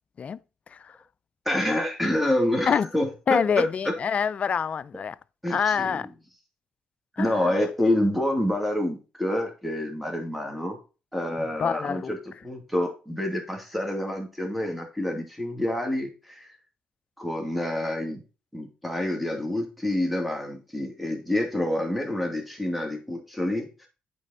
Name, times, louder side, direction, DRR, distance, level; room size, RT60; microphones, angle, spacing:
voice 1, 1.5-3.9 5.4-6.0 7.2-10.8 11.1-12.2 12.4-16.5 17.2-18.2 18.5-23.9, left 1 dB, ahead, 2.4 m, -27 dB
voice 2, 3.3-5.2 5.5-6.1 7.2-7.5 11.6-12.1, left 6 dB, 45° left, 0.4 m, -26 dB
8.5 x 4.1 x 4.1 m
supercardioid pair, 70°, 3 cm